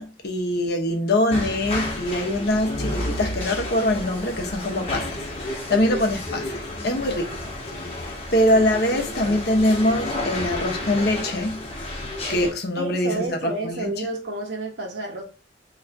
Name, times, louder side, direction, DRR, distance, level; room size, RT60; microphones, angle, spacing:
voice 1, 0.0-7.3 7.8-11.7 12.3-13.9, left 1 dB, 65° left, 0.9 m, -23 dB
sound 1, 1.3-12.5, left 1 dB, 35° left, 1.1 m, -31 dB
voice 2, 12.8-15.2, right 2 dB, 80° right, 1.2 m, -30 dB
3.1 x 2.6 x 4.4 m
head